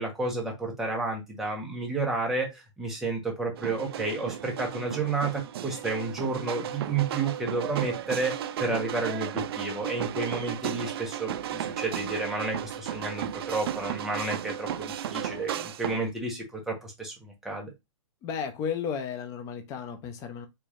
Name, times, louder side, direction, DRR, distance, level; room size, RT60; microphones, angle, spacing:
voice 1, 0.0-17.7, right 3 dB, ahead, 0.9 m, -31 dB
sound 1, 3.6-16.1, right 10 dB, 50° right, 0.4 m, -34 dB
voice 2, 18.2-20.5, left 7 dB, 20° left, 0.5 m, -33 dB
4.5 x 3.0 x 2.4 m
hypercardioid pair, 160°, 17 cm